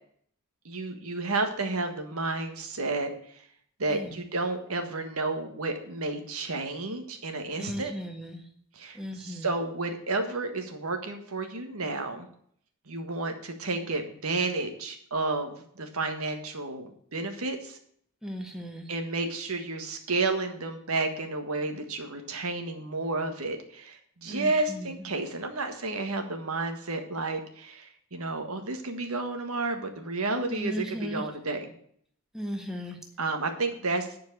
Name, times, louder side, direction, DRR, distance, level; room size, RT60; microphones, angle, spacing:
voice 1, 0.6-3.4 3.8-7.9 8.7-12.3 12.9-17.8 18.9-31.7 33.2-34.1, right 3 dB, 80° right, 6 dB, 1.6 m, -31 dB
voice 2, 7.6-8.4 8.9-9.5 18.2-18.9 24.3-24.9 30.5-31.2 32.3-33.0, equal, ahead, 2 dB, 1.4 m, -36 dB
10.5 x 4.7 x 7.9 m, 0.63 s
head